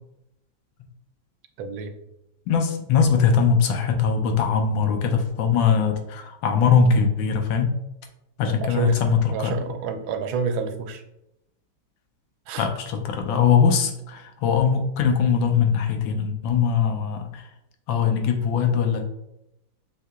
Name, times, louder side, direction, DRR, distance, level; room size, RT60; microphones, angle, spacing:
voice 1, 1.6-1.9 8.5-9.0 9.3-11.0 12.5-12.7, right 5 dB, 85° right, 6 dB, 1.4 m, -29 dB
voice 2, 2.5-7.7 8.4-9.7 12.6-17.4 17.9-19.1, left 6 dB, 85° left, 5 dB, 1.4 m, -21 dB
6.3 x 2.8 x 2.3 m, 0.85 s
omnidirectional pair, 2.1 m